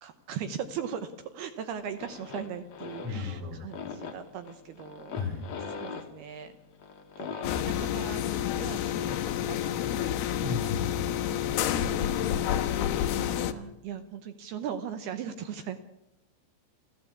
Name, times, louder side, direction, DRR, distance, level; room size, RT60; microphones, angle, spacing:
voice 1, 0.0-5.1 5.8-6.5 7.2-9.2 9.5-9.8 10.0-10.3 11.3-12.6 12.9-15.8, right 8 dB, 70° right, 9 dB, 2.7 m, -39 dB
sound 1, 1.7-7.6, left 6 dB, 50° left, 2.2 m, -42 dB
voice 2, 3.0-3.6 5.1-5.5 10.4-11.1, left 5 dB, 35° right, -2 dB, 4.5 m, -34 dB
sound 2, 7.4-13.5, left 10 dB, 75° left, 2.8 m, -29 dB
29.0 x 14.5 x 8.4 m, 0.88 s
omnidirectional pair, 5.1 m